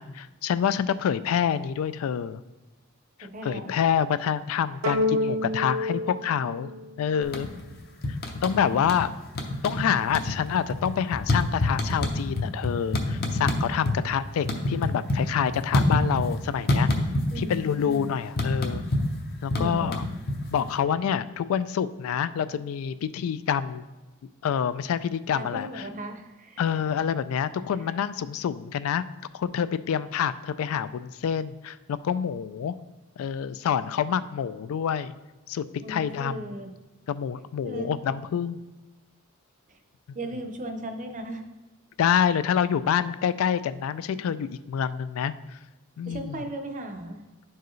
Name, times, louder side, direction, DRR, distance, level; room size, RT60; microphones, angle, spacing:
voice 1, 0.0-2.4 3.4-6.7 7.0-7.5 8.1-9.1 9.6-16.9 17.4-18.8 19.4-20.0 20.5-23.8 24.4-25.8 26.6-29.0 29.3-32.7 33.2-35.2 35.5-36.6 37.1-38.6 42.0-45.6 46.0-46.4, left 8 dB, 70° left, 15 dB, 0.3 m, -27 dB
voice 2, 3.2-3.7 8.7-8.8 17.3-18.1 19.5-19.9 25.3-26.6 35.8-36.7 37.6-37.9 39.7-39.8 40.1-41.4 46.1-47.2, right 1 dB, 35° right, 6 dB, 0.7 m, -36 dB
sound 1, 4.8-7.4, left 2 dB, 80° right, 0.7 m, -28 dB
sound 2, 7.2-7.7 8.0-9.1 9.3-9.8 10.1-14.0 14.3-16.4 16.7-17.5 17.8-20.7, left 2 dB, 45° left, 0.8 m, -26 dB
9.9 x 4.6 x 3.1 m, 1.1 s
head